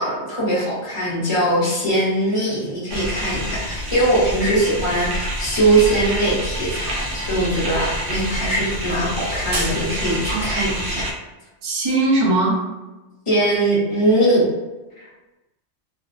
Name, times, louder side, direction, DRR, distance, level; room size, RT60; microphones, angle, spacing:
voice 1, 0.0-11.1 13.3-14.5 15.0-15.1, right 1 dB, 30° left, -7 dB, 0.7 m, -21 dB
sound 1, 2.9-11.1, equal, 65° right, 0.9 m, -27 dB
voice 2, 10.3-10.9 11.6-12.6, right 2 dB, 40° right, -4 dB, 0.4 m, -21 dB
2.5 x 2.0 x 2.4 m, 1.1 s
omnidirectional pair, 1.3 m